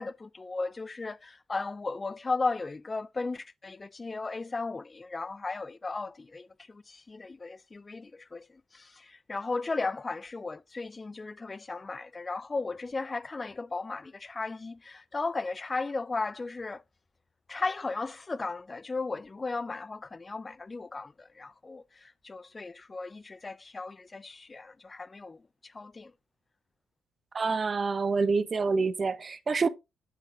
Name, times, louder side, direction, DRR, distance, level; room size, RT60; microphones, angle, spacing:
voice 1, 0.0-16.8 17.5-26.1, left 3 dB, 30° left, 0.3 m, -36 dB
voice 2, 27.3-29.7, right 4 dB, 35° right, 0.5 m, -27 dB
7.7 x 5.9 x 2.4 m
figure-of-eight pair, 45°, 0 cm